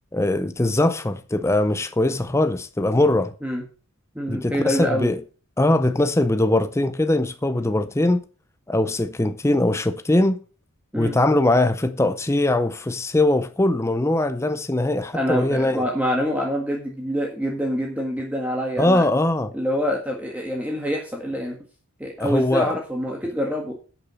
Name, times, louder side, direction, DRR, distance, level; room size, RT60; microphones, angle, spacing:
voice 1, 0.1-3.3 4.3-5.2 5.6-8.2 8.7-10.4 11.0-15.8 18.8-19.5 22.2-22.8, left 1 dB, 10° left, 0.5 m, -21 dB
voice 2, 4.2-5.1 10.9-11.1 15.1-19.1 19.5-21.6 22.0-23.7, equal, 5° right, 1.6 m, -26 dB
11.0 x 6.9 x 5.6 m
head